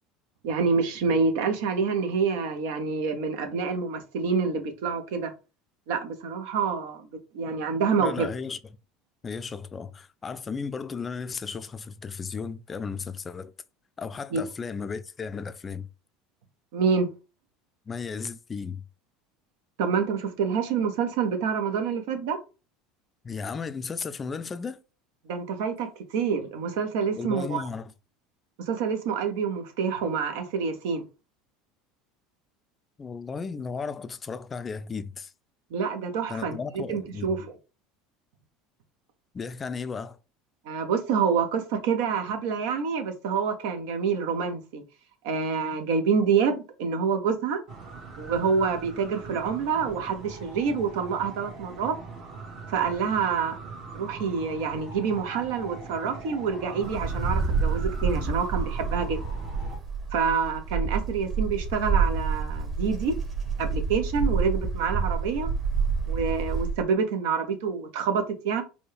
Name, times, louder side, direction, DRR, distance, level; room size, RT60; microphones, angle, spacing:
voice 1, 0.4-5.3 5.9-7.1 7.3-8.3 14.3-14.4 16.7-17.1 19.8-22.4 25.3-25.9 26.1-27.6 28.7-31.0 35.7-37.5 40.7-44.8 45.2-47.6 48.2-51.9 52.7-53.6 53.9-59.2 60.1-63.1 63.6-65.5 66.1-68.6, right 5 dB, 70° right, 0.8 m, -27 dB
voice 2, 8.0-8.6 9.2-13.5 14.0-15.9 17.9-18.8 23.2-24.8 27.1-27.9 33.0-35.3 36.3-37.3 39.3-40.2, left 5 dB, 30° left, 0.4 m, -35 dB
sound 1, 47.7-59.8, right 4 dB, 55° right, 1.6 m, -41 dB
Wind, 56.8-66.8, right 5 dB, 30° right, 1.3 m, -28 dB
4.2 x 2.3 x 3.2 m
hypercardioid pair, 80°, 0 cm